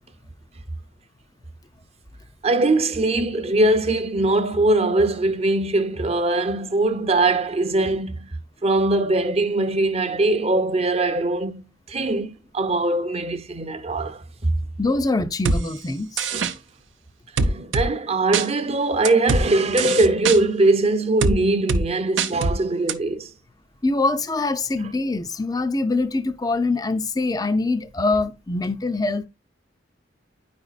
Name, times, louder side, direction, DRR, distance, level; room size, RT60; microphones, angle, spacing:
voice 1, 2.4-14.5 16.3-16.6 17.4-23.3, right 2 dB, 35° right, 0.6 m, -21 dB
voice 2, 14.8-16.3 23.8-29.3, left 3 dB, 20° left, 0.4 m, -24 dB
sound 1, 15.5-15.6 16.2-16.5 17.4-17.9 18.3-18.5 19.1-19.4 19.8-20.4 21.2-21.4 21.7-21.8 22.2-22.6 22.9-23.0, right 3 dB, 80° right, 0.6 m, -21 dB
9.8 x 5.1 x 2.4 m
head